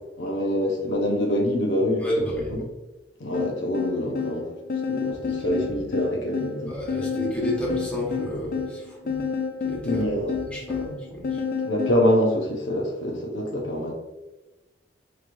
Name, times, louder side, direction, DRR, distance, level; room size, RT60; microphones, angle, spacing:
voice 1, 0.2-2.0 2.5-2.7 3.2-4.5 4.9-6.7 9.8-10.3 11.6-13.9, equal, 85° left, 1 dB, 0.7 m, -25 dB
voice 2, 2.0-2.6 5.2-5.3 6.7-9.3 9.6-10.1 10.5-11.4, equal, 5° left, -6 dB, 1.2 m, -31 dB
sound 1, 3.3-12.0, left 6 dB, 50° left, 0.5 m, -30 dB
4.4 x 3.0 x 2.5 m, 1.1 s
head